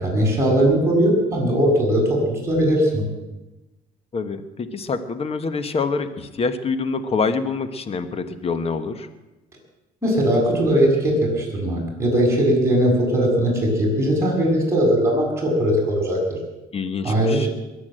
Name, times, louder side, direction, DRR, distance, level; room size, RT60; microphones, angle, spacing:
voice 1, 0.0-3.0 10.0-16.2 17.0-17.5, right 1 dB, 15° right, -2 dB, 7.1 m, -19 dB
voice 2, 4.1-9.1 16.7-17.5, left 4 dB, 35° left, 10 dB, 1.3 m, -26 dB
21.5 x 8.5 x 7.8 m, 1.1 s
cardioid pair, 110°, 17 cm